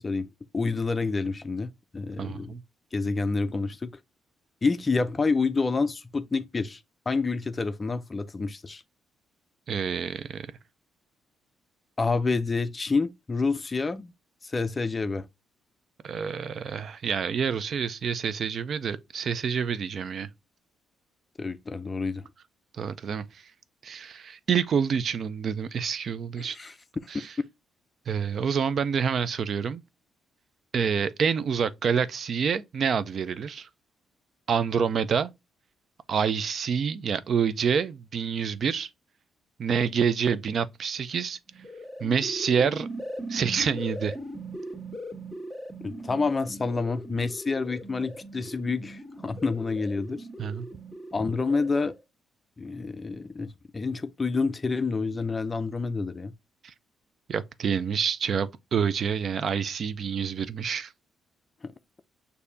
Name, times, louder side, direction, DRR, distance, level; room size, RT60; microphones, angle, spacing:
voice 1, 0.0-2.5 2.9-3.9 4.6-8.8 12.0-14.1 14.4-15.3 21.4-22.3 26.4-26.8 45.8-50.3 51.1-52.0 52.6-56.3, left 4 dB, 25° left, 0.4 m, -28 dB
voice 2, 2.2-2.6 9.7-10.5 16.0-20.3 22.8-23.3 23.8-26.6 27.1-27.3 28.1-29.8 30.7-33.7 34.5-35.3 36.1-38.9 39.6-41.4 42.0-42.9 43.3-44.1 50.4-50.7 56.6-56.7 57.3-60.9, right 6 dB, 55° right, 0.4 m, -27 dB
sound 1, 41.5-52.0, right 1 dB, 20° right, 1.8 m, -40 dB
6.6 x 2.7 x 2.6 m
cardioid pair, 90°, 0 cm